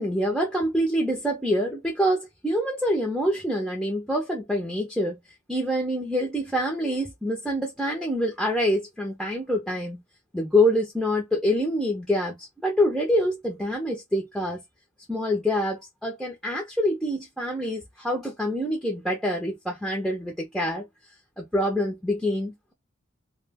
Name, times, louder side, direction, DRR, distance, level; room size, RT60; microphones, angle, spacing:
voice 1, 0.0-5.2 5.5-10.0 10.3-14.6 15.1-20.9 21.4-22.7, equal, ahead, 0.5 m, -26 dB
2.3 x 2.0 x 3.3 m
head